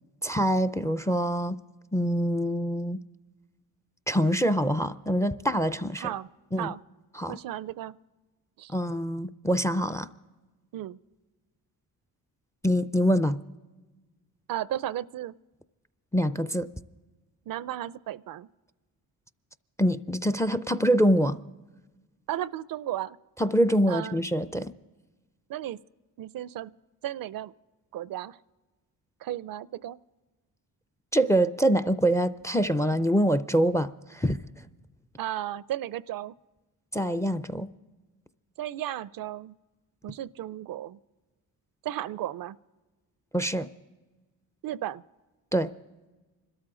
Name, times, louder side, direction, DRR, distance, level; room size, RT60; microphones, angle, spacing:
voice 1, 0.2-1.6 1.9-3.0 4.1-6.1 6.5-6.7 7.2-7.4 8.7-10.1 12.6-13.4 16.1-16.7 19.8-21.4 23.4-24.7 31.1-34.4 36.9-37.7 43.3-43.7 45.5-45.7, equal, 10° left, 13 dB, 0.4 m, -25 dB
voice 2, 6.0-6.3 6.6-6.8 7.3-8.0 8.6-8.7 10.7-11.0 14.5-15.3 17.5-18.5 22.3-23.2 23.9-24.2 25.5-25.8 26.2-26.7 27.0-27.5 27.9-28.4 29.2-30.0 35.2-36.3 38.6-39.5 40.0-41.0 41.8-42.6 44.6-45.0, right 12 dB, 65° right, 19 dB, 0.5 m, -34 dB
25.0 x 13.5 x 3.8 m, 1.2 s
cardioid pair, 100°, 37 cm